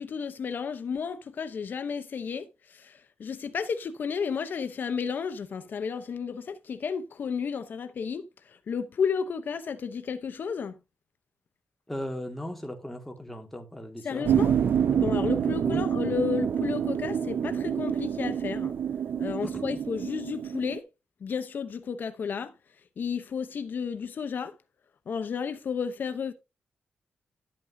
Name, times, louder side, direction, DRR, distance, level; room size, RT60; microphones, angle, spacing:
voice 1, 0.0-10.7 14.0-14.5 14.9-18.7 19.2-20.8 21.2-22.5 23.0-24.6 25.1-26.3, left 6 dB, 60° left, 0.7 m, -32 dB
voice 2, 11.9-14.3 15.7-15.9 19.4-19.8, equal, 5° left, 1.9 m, -37 dB
sound 1, 14.2-20.8, right 8 dB, 70° right, 0.6 m, -27 dB
12.0 x 8.9 x 2.7 m
wide cardioid pair, 130°, 4 cm